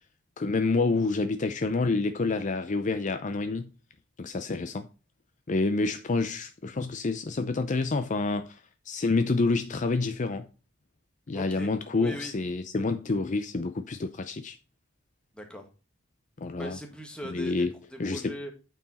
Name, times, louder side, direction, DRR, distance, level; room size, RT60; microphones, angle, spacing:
voice 1, 0.4-3.7 4.2-4.9 5.5-10.5 11.3-14.6 16.4-16.8 17.2-17.7 18.0-18.3, left 3 dB, 40° left, 0.5 m, -28 dB
voice 2, 11.3-12.3 15.3-15.7 16.6-18.5, equal, 5° left, 1.7 m, -40 dB
8.8 x 4.6 x 4.1 m
head